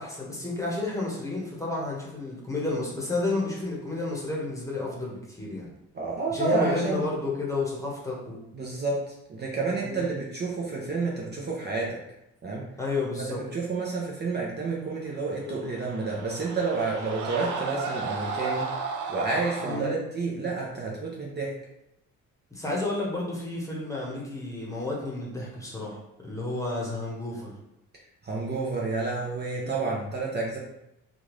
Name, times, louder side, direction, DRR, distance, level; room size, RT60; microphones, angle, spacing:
voice 1, 0.0-5.7 6.3-8.4 9.8-10.0 12.8-13.4 19.6-19.9 22.5-26.0 26.2-27.5 29.6-29.8, left 2 dB, 10° left, -4 dB, 1.1 m, -31 dB
voice 2, 5.9-7.0 8.5-12.0 12.4-12.6 13.0-18.7 19.1-21.5 28.2-30.6, right 4 dB, 35° right, -3 dB, 0.7 m, -30 dB
sound 1, 15.4-19.8, right 4 dB, 80° right, 0.6 m, -34 dB
3.4 x 2.5 x 3.1 m, 0.86 s
cardioid pair, 90°, 30 cm